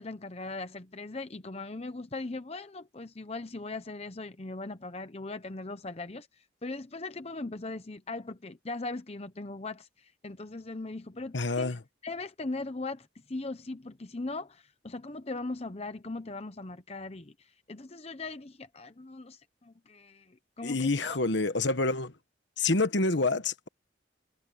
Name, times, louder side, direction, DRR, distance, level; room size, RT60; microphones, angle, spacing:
voice 1, 0.0-11.7 12.0-21.2, left 2 dB, 30° left, 0.9 m, -39 dB
voice 2, 11.3-11.8 20.6-22.1 22.6-23.7, left 3 dB, 65° left, 1.3 m, -27 dB
head